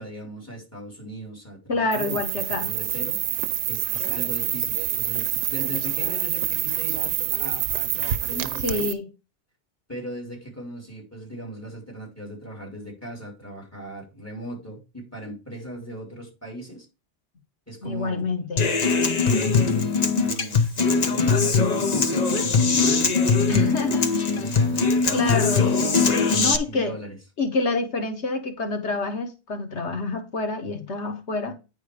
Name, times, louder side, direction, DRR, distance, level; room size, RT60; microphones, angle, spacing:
voice 1, 0.0-3.2 3.7-8.9 9.9-16.9 17.7-18.3 19.2-23.2 23.8-25.2 26.6-27.2, right 1 dB, 15° left, 4.3 m, -38 dB
voice 2, 1.7-2.7 8.6-9.1 17.8-18.7 23.4-24.2 25.1-25.7 26.3-27.0 27.4-31.6, left 3 dB, 90° left, 1.7 m, -27 dB
sound 1, 1.9-8.9, right 11 dB, 80° right, 0.9 m, -27 dB
Human voice / Acoustic guitar, 18.6-26.6, left 4 dB, 40° left, 0.9 m, -21 dB
9.7 x 4.6 x 5.0 m
omnidirectional pair, 1.1 m